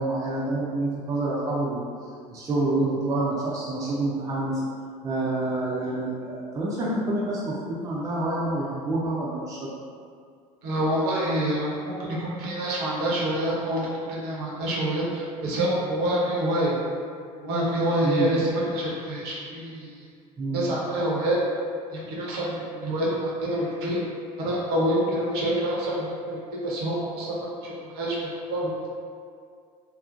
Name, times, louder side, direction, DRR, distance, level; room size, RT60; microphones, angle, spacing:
voice 1, 0.0-1.8 2.3-4.6 5.0-9.7 18.0-18.3 20.4-20.6, right 2 dB, 15° right, -6 dB, 0.5 m, -27 dB
voice 2, 10.6-16.8 17.4-20.0 20.5-21.4 21.9-24.0 24.4-28.9, right 1 dB, 55° right, -5 dB, 0.7 m, -27 dB
2.6 x 2.0 x 2.5 m, 2.2 s
figure-of-eight pair, 65°, 20 cm